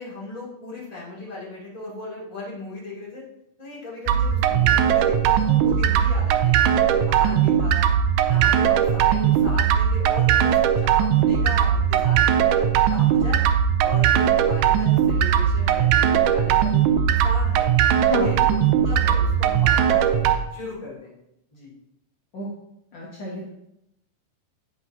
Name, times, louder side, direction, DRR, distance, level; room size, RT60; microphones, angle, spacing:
voice 1, 0.0-3.2 3.6-7.9 8.3-13.4 13.8-17.7 18.1-21.1 21.5-21.7, left 2 dB, 10° left, -6 dB, 2.2 m, -37 dB
sound 1, 4.1-20.4, right 9 dB, 85° right, 1.7 m, -19 dB
voice 2, 17.9-18.4 22.3-22.5 22.9-23.5, left 2 dB, 65° left, -4 dB, 1.2 m, -30 dB
10.0 x 8.3 x 2.8 m, 0.82 s
omnidirectional pair, 4.0 m